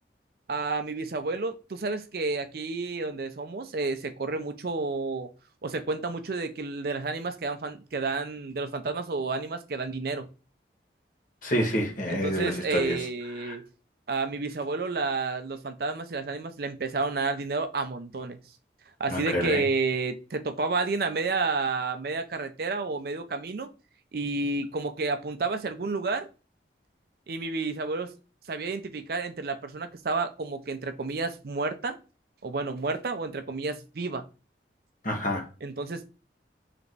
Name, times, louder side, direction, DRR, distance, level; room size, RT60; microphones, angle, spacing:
voice 1, 0.5-5.3 5.6-10.3 12.1-13.6 14.1-18.4 19.0-23.7 24.1-26.3 27.3-28.1 28.5-32.0 32.4-34.2 35.6-36.1, right 3 dB, 55° right, 0.5 m, -30 dB
voice 2, 11.4-13.1 13.4-13.5 19.1-19.6 35.0-35.5, equal, 45° left, 1.4 m, -28 dB
3.4 x 3.0 x 3.9 m
head